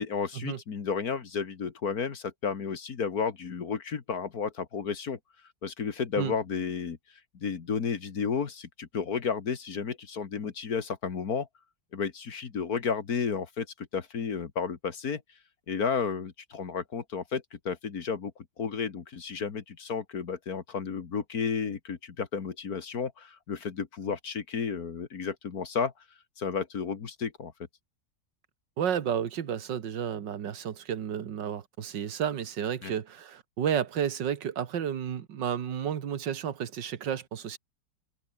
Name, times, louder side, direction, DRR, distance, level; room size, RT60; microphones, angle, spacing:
voice 1, 0.0-5.2 5.6-7.0 7.3-11.5 11.9-15.2 15.7-18.3 18.6-25.9 26.4-27.5 32.8-32.9, left 6 dB, 55° left, 2.1 m, -32 dB
voice 2, 28.8-37.6, right 9 dB, 85° right, 2.0 m, -31 dB
omnidirectional pair, 1.9 m